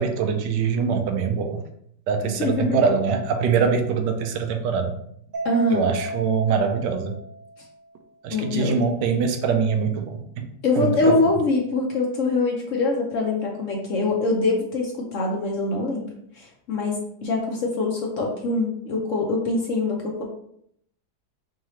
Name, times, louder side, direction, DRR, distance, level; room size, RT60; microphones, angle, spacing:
voice 1, 0.0-1.6 2.1-4.9 5.7-7.1 8.2-10.5 10.8-11.2, right 6 dB, 85° right, 6 dB, 1.3 m, -23 dB
voice 2, 2.2-2.8 5.4-5.9 8.3-8.8 10.6-16.1 16.3-20.2, left 3 dB, 60° left, -1 dB, 0.8 m, -24 dB
Mallet percussion, 5.3-7.8, right 2 dB, 40° right, 0.7 m, -33 dB
4.7 x 3.0 x 3.0 m, 0.70 s
omnidirectional pair, 1.9 m